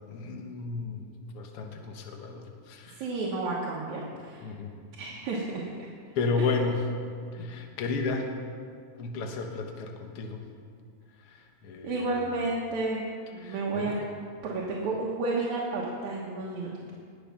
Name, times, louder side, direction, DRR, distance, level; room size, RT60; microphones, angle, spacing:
voice 1, 0.1-1.0 1.3-3.0 4.4-4.7 6.2-6.8 7.3-8.3 9.0-10.4 11.2-12.3 13.4-14.0, left 4 dB, 60° left, 3 dB, 1.9 m, -33 dB
voice 2, 2.9-4.5 5.0-5.6 6.4-6.5 11.8-14.0 14.4-16.9, right 3 dB, 75° right, -4 dB, 2.6 m, -31 dB
20.0 x 7.2 x 5.8 m, 2.2 s
omnidirectional pair, 3.5 m